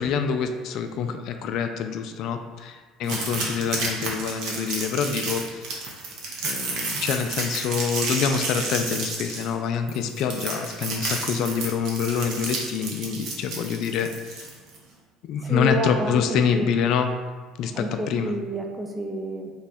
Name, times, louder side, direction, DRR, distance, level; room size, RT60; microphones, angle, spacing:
voice 1, 0.0-5.7 6.4-14.5 15.3-17.1 17.6-18.3, left 6 dB, 65° left, 7 dB, 0.3 m, -26 dB
sound 1, 3.0-14.8, right 3 dB, 65° right, 0.7 m, -31 dB
voice 2, 15.4-16.7 17.7-19.5, equal, 20° right, 2 dB, 0.6 m, -29 dB
3.1 x 2.2 x 4.2 m, 1.5 s
hypercardioid pair, 75°, 0 cm